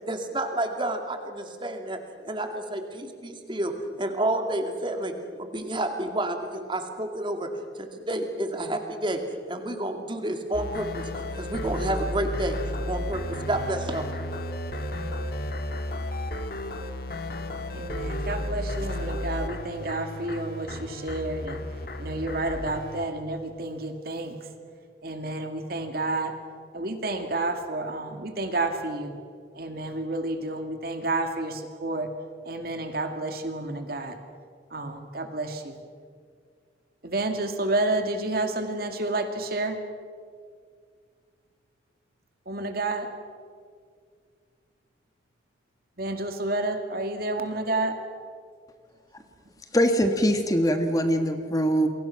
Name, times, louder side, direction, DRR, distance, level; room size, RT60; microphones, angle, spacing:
voice 1, 0.1-7.5 7.7-9.2 9.5-12.6 12.8-13.2 13.5-14.1, right 1 dB, 25° right, 5 dB, 2.4 m, -30 dB
sound 1, 10.5-23.1, left 1 dB, 55° left, 1.7 m, -33 dB
voice 2, 17.7-21.6 22.0-24.4 25.0-26.3 26.7-29.2 29.6-32.1 32.5-34.2 34.7-35.8 37.0-39.8 42.5-43.1 46.0-48.0, right 2 dB, 55° right, 6 dB, 2.3 m, -30 dB
voice 3, 49.7-51.9, equal, 20° left, 6 dB, 1.5 m, -22 dB
28.5 x 23.0 x 5.9 m, 2.1 s
head